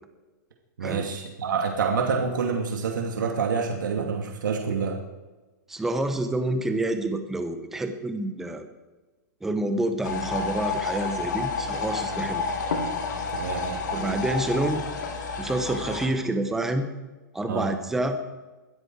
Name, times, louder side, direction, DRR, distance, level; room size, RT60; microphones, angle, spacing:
voice 1, 0.8-5.0 13.3-14.2 17.5-17.7, right 5 dB, 90° right, 2 dB, 2.5 m, -27 dB
voice 2, 5.7-8.7 9.4-12.4 13.9-14.8 15.4-16.9 17.3-18.2, right 1 dB, 5° right, 7 dB, 0.9 m, -28 dB
sound 1, 10.0-16.1, left 4 dB, 70° left, 3.1 m, -30 dB
22.0 x 13.0 x 4.7 m, 1.2 s
hypercardioid pair, 175°, 10 cm